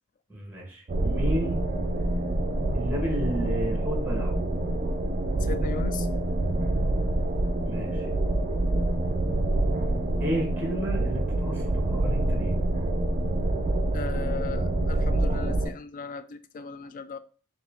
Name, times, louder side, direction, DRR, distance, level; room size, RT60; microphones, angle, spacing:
voice 1, 0.3-1.6 2.7-4.4 7.6-8.1 10.2-12.6, equal, 10° right, 1.3 m, -32 dB
sound 1, 0.9-15.7, right 1 dB, 35° right, 0.5 m, -26 dB
voice 2, 5.4-6.1 13.9-17.2, left 5 dB, 40° left, 0.4 m, -37 dB
4.4 x 3.0 x 3.6 m
head